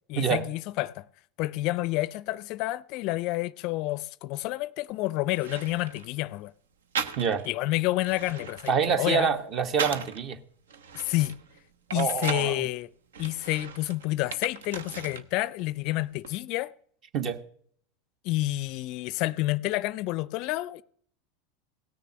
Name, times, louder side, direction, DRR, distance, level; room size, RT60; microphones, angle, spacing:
voice 1, 0.1-1.0 1.4-6.5 7.4-9.3 10.9-11.3 11.9-12.9 13.2-16.7 18.2-20.8, left 18 dB, 55° left, 0.4 m, -29 dB
sound 1, 4.9-5.0 5.3-6.1 6.9-7.6 7.9-10.2 10.7-12.6 13.1-15.3 15.6-16.4, right 6 dB, 80° right, 0.8 m, -37 dB
voice 2, 8.7-10.4 11.9-12.7 17.1-17.4, right 6 dB, 40° right, 1.2 m, -26 dB
17.0 x 6.7 x 6.4 m
hypercardioid pair, 90°, 0 cm